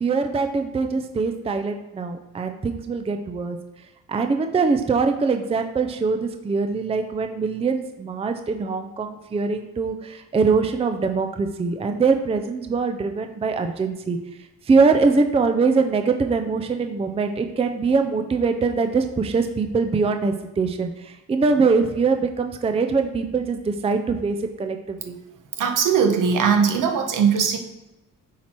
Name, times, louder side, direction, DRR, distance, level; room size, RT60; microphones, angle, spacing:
voice 1, 0.0-3.6 4.1-14.2 14.7-25.2, right 4 dB, 20° right, 6 dB, 0.4 m, -23 dB
voice 2, 25.6-27.6, right 6 dB, 75° right, 4 dB, 1.1 m, -19 dB
7.3 x 4.5 x 4.4 m, 1.0 s
cardioid pair, 130°, 32 cm